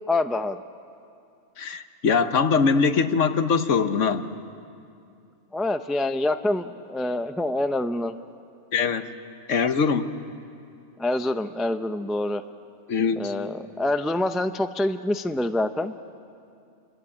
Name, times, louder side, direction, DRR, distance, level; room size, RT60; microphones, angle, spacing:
voice 1, 0.1-0.6 5.5-8.1 11.0-12.4 13.2-15.9, left 2 dB, ahead, 8 dB, 0.4 m, -26 dB
voice 2, 1.6-4.3 8.7-9.1 9.5-10.1 12.9-13.3, left 5 dB, 60° left, 10 dB, 1.3 m, -22 dB
28.5 x 22.5 x 8.6 m, 2.5 s
omnidirectional pair, 1.5 m